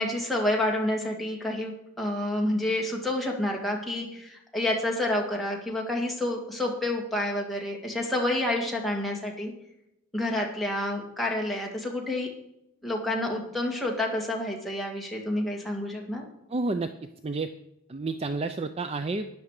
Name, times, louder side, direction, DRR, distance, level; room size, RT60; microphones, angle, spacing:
voice 1, 0.0-9.5 10.1-12.3 12.8-16.3, left 1 dB, ahead, -2 dB, 2.0 m, -29 dB
voice 2, 16.5-16.9 17.2-17.5 17.9-19.3, right 3 dB, 25° right, 9 dB, 0.4 m, -30 dB
12.5 x 9.9 x 4.8 m, 0.83 s
head